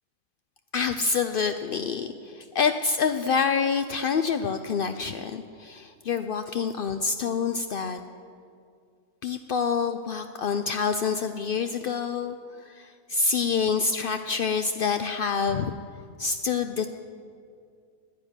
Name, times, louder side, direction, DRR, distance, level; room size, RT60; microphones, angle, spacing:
voice 1, 0.7-8.0 9.2-15.7 16.2-16.9, left 5 dB, 70° left, 8 dB, 0.5 m, -27 dB
12.0 x 10.0 x 9.8 m, 2.3 s
omnidirectional pair, 1.6 m